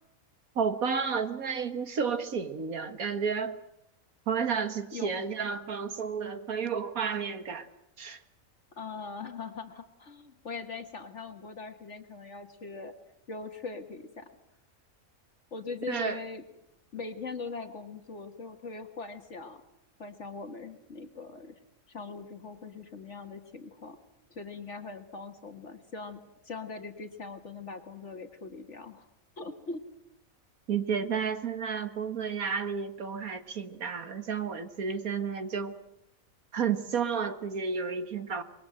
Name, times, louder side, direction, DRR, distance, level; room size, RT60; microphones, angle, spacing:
voice 1, 0.6-3.6 4.3-7.7 8.0-8.2 15.9-16.2 30.7-35.8 36.5-38.4, right 6 dB, 85° right, 9 dB, 2.1 m, -31 dB
voice 2, 4.9-5.3 8.8-12.9 13.3-14.3 15.5-16.4 16.9-19.6 20.0-21.6 21.9-24.0 24.3-29.1 29.4-29.8, left 4 dB, 55° left, 6 dB, 2.0 m, -41 dB
25.5 x 22.0 x 7.8 m, 0.79 s
omnidirectional pair, 1.4 m